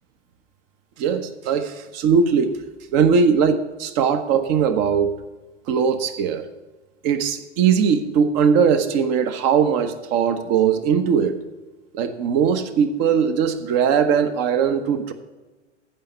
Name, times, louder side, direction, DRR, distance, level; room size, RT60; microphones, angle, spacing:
voice 1, 1.0-2.6 2.9-5.1 5.7-6.4 7.0-11.4 11.9-15.1, right 6 dB, 40° right, 9 dB, 1.2 m, -20 dB
15.0 x 5.9 x 6.7 m, 1.2 s
figure-of-eight pair, 95°, 37 cm